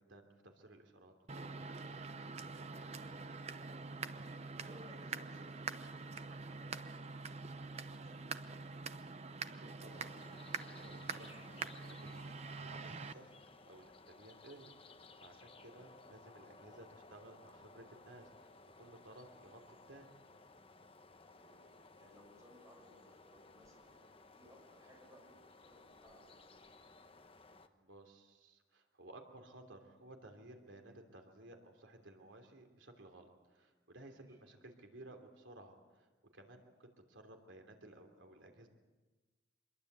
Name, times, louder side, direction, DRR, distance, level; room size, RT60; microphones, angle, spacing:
voice 1, 0.0-2.0 9.6-10.1 10.6-19.6 19.9-20.1 27.5-36.1 36.3-38.7, right 1 dB, 85° right, 4 dB, 3.1 m, -57 dB
sound 1, 1.3-13.1, right 4 dB, 35° right, 0.8 m, -45 dB
voice 2, 3.6-8.8 15.7-15.9 20.9-26.8 34.0-34.4, left 1 dB, 15° right, -1 dB, 6.3 m, -64 dB
sound 2, 9.9-27.7, left 3 dB, 30° left, 1.2 m, -59 dB
26.0 x 21.5 x 8.1 m, 1.3 s
head